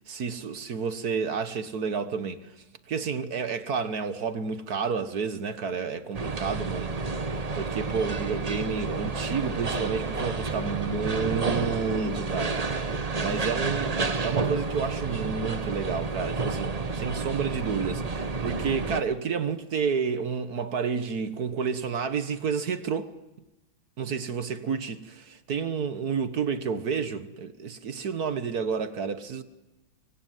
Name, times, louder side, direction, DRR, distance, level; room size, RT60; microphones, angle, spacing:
voice 1, 0.1-2.5 2.9-6.9 7.6-12.6 13.2-23.1 24.0-29.4, right 5 dB, 55° right, 1.7 m, -30 dB
sound 1, 6.1-19.0, right 3 dB, 25° right, 0.8 m, -30 dB
25.5 x 23.0 x 9.4 m
omnidirectional pair, 2.2 m